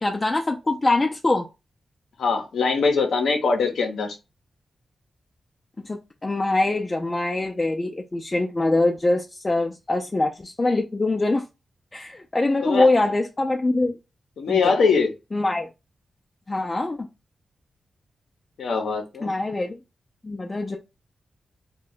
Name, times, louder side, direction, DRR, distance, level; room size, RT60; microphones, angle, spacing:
voice 1, 0.0-1.5 5.8-11.5 11.9-14.0 14.5-14.7 15.3-15.7 16.5-17.1 19.2-19.8 20.2-20.8, left 2 dB, 35° left, 2 dB, 0.4 m, -23 dB
voice 2, 2.2-4.2 12.6-12.9 14.4-15.1 18.6-19.3, left 4 dB, 85° left, 4 dB, 0.6 m, -22 dB
2.2 x 2.1 x 3.7 m, 0.26 s
supercardioid pair, 45°, 0 cm